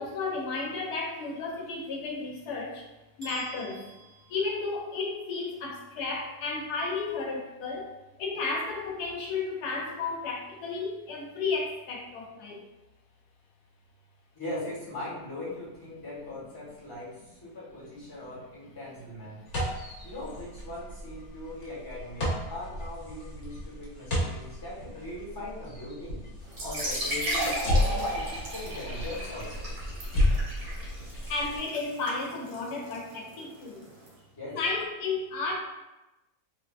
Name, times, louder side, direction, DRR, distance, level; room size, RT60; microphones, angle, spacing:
voice 1, 0.0-2.8 3.2-3.9 4.3-7.9 8.2-12.6 31.3-33.9 34.5-35.5, left 4 dB, 85° left, -1 dB, 1.2 m, -33 dB
sound 1, 3.2-5.2, right 4 dB, 30° right, 1.0 m, -48 dB
voice 2, 14.3-19.4 20.0-26.2 26.6-29.7 34.3-34.6, left 1 dB, 15° left, -7 dB, 1.0 m, -40 dB
sound 2, 19.5-31.6, left 1 dB, 55° left, 1.1 m, -33 dB
sound 3, 26.5-34.1, right 1 dB, 65° right, 1.2 m, -35 dB
3.3 x 2.7 x 2.3 m, 1.0 s
omnidirectional pair, 1.6 m